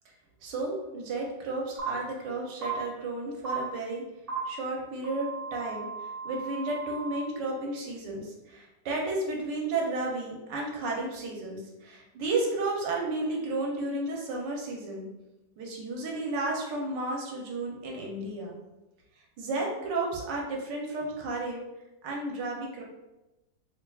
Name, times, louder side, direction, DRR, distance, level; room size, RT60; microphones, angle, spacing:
voice 1, 0.4-4.0 4.4-15.1 15.6-18.5 19.2-21.6 22.0-22.8, right 2 dB, 85° right, -1 dB, 1.3 m, -33 dB
sound 1, 1.8-1.9 2.6-2.7 3.4-3.5 4.3-4.4 5.0-7.2, right 4 dB, 35° right, 1.4 m, -37 dB
3.6 x 2.9 x 2.3 m, 1.0 s
omnidirectional pair, 1.9 m